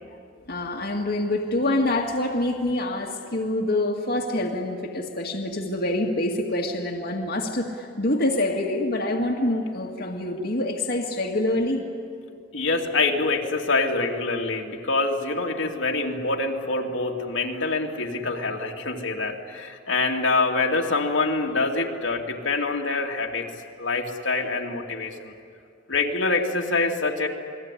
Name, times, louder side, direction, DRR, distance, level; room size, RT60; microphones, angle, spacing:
voice 1, 0.5-11.8, left 1 dB, 55° left, 0 dB, 1.9 m, -26 dB
voice 2, 12.5-23.5 23.8-25.3 25.9-27.3, left 3 dB, 80° left, 0 dB, 2.6 m, -25 dB
29.0 x 20.5 x 9.9 m, 2.3 s
head